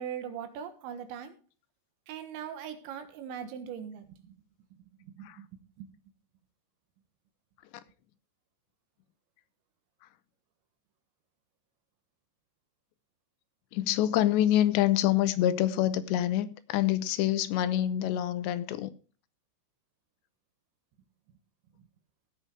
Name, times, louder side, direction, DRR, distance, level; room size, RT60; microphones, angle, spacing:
voice 1, 0.0-1.4 2.1-4.3 5.0-5.5 5.8-5.9, right 8 dB, 85° right, 3.7 m, -40 dB
voice 2, 13.7-18.9, left 12 dB, 80° left, 2.8 m, -26 dB
17.0 x 6.1 x 4.7 m
omnidirectional pair, 5.2 m